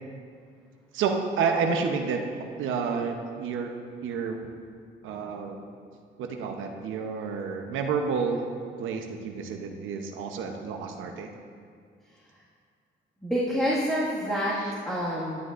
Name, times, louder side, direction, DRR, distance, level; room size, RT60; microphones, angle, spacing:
voice 1, 0.9-2.2 2.6-3.7 4.0-4.4 5.0-5.6 6.2-8.5 8.8-11.3 14.6-14.7, right 5 dB, 85° right, 4 dB, 0.8 m, -29 dB
voice 2, 13.2-14.6 14.9-15.4, equal, ahead, -8 dB, 1.8 m, -27 dB
11.5 x 9.6 x 2.5 m, 2.2 s
cardioid pair, 90°, 20 cm